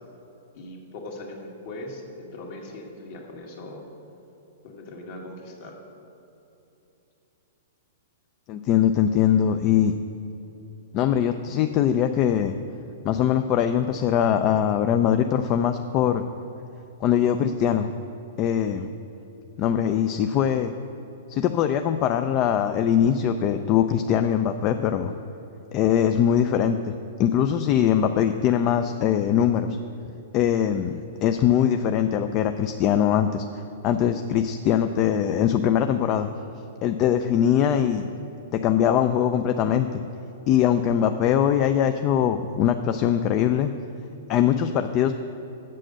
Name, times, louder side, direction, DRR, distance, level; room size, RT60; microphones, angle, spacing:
voice 1, 0.5-3.8 4.6-5.7, left 2 dB, 55° left, 0 dB, 2.0 m, -39 dB
voice 2, 8.5-9.9 10.9-12.5 13.0-16.2 17.0-17.9 18.4-18.9 19.6-20.7 21.3-25.1 25.7-26.9 27.2-29.7 30.3-33.4 33.8-36.3 36.8-38.0 38.5-39.9 40.5-43.7 44.3-45.1, left 9 dB, 35° left, 7 dB, 0.4 m, -22 dB
7.6 x 7.5 x 6.3 m, 3.0 s
hypercardioid pair, 140°, 0 cm